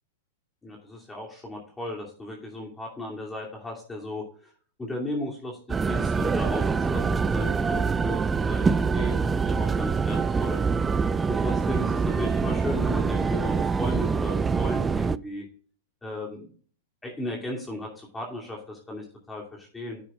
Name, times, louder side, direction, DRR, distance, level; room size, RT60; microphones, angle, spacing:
voice 1, 0.6-4.5 4.8-10.6 11.3-15.5 16.0-16.5 17.0-20.0, left 1 dB, 10° left, -2 dB, 2.6 m, -35 dB
sound 1, 5.7-15.2, right 5 dB, 15° right, 0.4 m, -25 dB
10.5 x 8.7 x 2.4 m, 0.43 s
hypercardioid pair, 105°, 0 cm